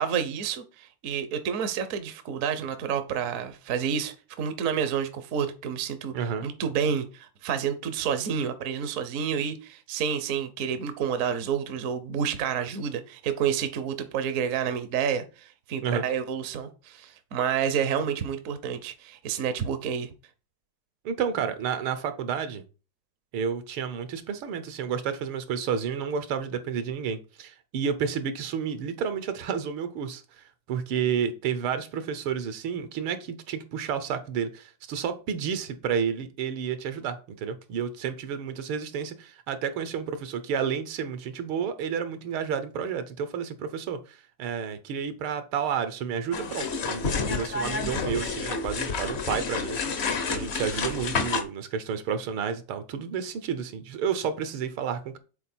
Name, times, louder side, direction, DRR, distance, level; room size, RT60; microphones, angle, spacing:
voice 1, 0.0-6.1 6.4-20.1, right 7 dB, 60° right, 0.9 m, -29 dB
voice 2, 6.1-6.5 15.8-16.0 21.0-22.6 23.3-55.2, right 7 dB, 80° right, 1.7 m, -31 dB
sound 1, 46.3-51.4, left 4 dB, 60° left, 0.7 m, -29 dB
7.0 x 4.1 x 4.3 m
omnidirectional pair, 2.3 m